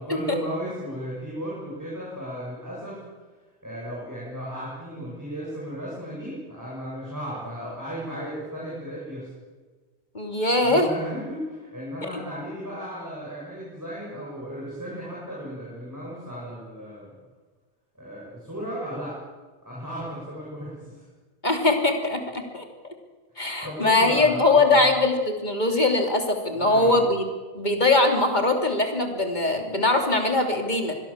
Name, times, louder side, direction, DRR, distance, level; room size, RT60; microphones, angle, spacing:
voice 1, 0.0-3.0 3.6-9.3 10.6-17.2 17.9-19.2 19.6-21.0 23.6-24.9 26.6-27.1, equal, 15° right, -6 dB, 7.9 m, -35 dB
voice 2, 10.1-10.9 12.0-12.1 21.4-22.6 23.4-27.2 27.5-31.0, left 2 dB, 40° left, 4 dB, 3.3 m, -21 dB
25.5 x 21.5 x 7.5 m, 1.4 s
omnidirectional pair, 1.2 m